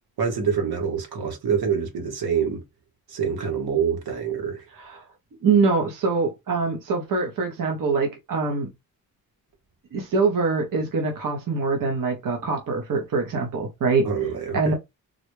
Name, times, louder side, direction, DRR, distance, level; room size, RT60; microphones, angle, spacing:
voice 1, 0.2-2.6 3.1-4.7 14.0-14.7, right 7 dB, 90° right, 1.4 m, -26 dB
voice 2, 4.7-5.0 5.4-8.7 9.9-14.1 14.5-14.7, right 4 dB, 60° right, 0.9 m, -24 dB
3.8 x 2.2 x 3.1 m
wide cardioid pair, 130°, 36 cm